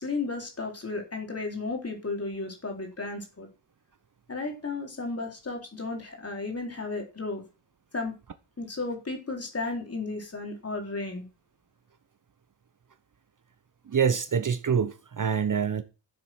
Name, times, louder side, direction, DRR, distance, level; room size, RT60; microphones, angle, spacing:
voice 1, 0.0-3.5 4.3-7.4 7.9-8.1 8.6-11.3, left 3 dB, 30° left, 4.0 m, -34 dB
voice 2, 13.9-15.8, right 7 dB, 45° right, 1.0 m, -26 dB
13.5 x 7.7 x 6.1 m
wide cardioid pair, 145°, 46 cm